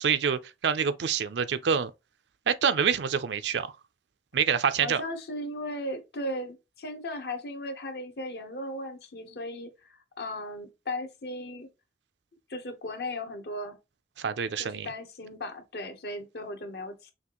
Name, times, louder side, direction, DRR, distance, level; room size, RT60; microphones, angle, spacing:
voice 1, 0.0-1.9 2.5-3.7 4.3-5.0 14.2-14.9, right 7 dB, 75° right, 0.5 m, -26 dB
voice 2, 4.8-11.7 12.5-13.8 14.6-17.1, left 1 dB, 60° left, 0.9 m, -37 dB
5.7 x 2.5 x 3.0 m
head